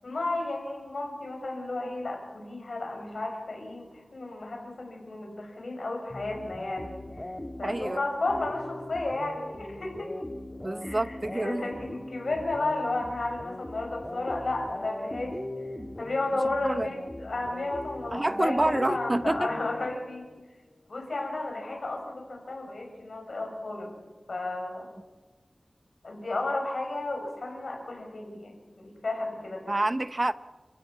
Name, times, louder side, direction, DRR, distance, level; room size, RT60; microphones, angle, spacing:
voice 1, 0.0-7.1 7.6-10.3 10.8-15.4 16.0-20.3 20.9-23.9 24.3-24.9 26.0-29.7, left 2 dB, 75° left, 3 dB, 5.8 m, -33 dB
sound 1, 6.1-20.4, left 1 dB, 25° left, 1.7 m, -40 dB
voice 2, 7.6-8.0 10.6-11.7 16.6-16.9 18.1-19.5 29.7-30.3, right 2 dB, 35° right, 14 dB, 0.8 m, -28 dB
29.5 x 15.0 x 7.3 m, 1.3 s
wide cardioid pair, 50°, 0 cm